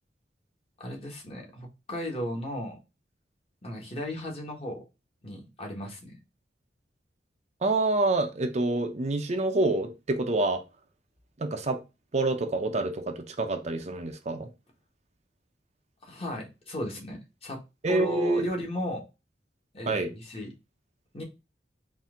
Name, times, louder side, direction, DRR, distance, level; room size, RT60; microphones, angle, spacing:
voice 1, 0.8-2.8 3.6-4.8 5.2-6.2 16.0-17.6 17.9-19.0 19.7-20.5 21.1-21.2, equal, 35° left, 1.4 m, -35 dB
voice 2, 7.6-10.6 11.4-11.8 12.1-14.5 17.8-18.4 19.9-20.1, right 2 dB, 40° right, 0.6 m, -27 dB
4.3 x 2.7 x 3.6 m
head